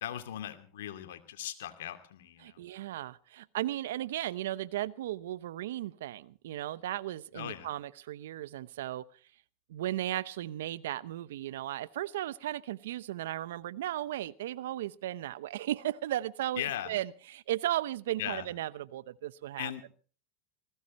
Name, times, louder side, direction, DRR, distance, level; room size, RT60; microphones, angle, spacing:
voice 1, 0.0-2.6 7.3-7.7 16.6-16.9 18.2-18.4 19.6-19.8, left 11 dB, 80° left, 8 dB, 2.5 m, -38 dB
voice 2, 2.4-9.1 9.7-19.7, right 13 dB, 80° right, 18 dB, 0.8 m, -36 dB
20.0 x 16.5 x 4.3 m, 0.40 s
hypercardioid pair, 100°, 0 cm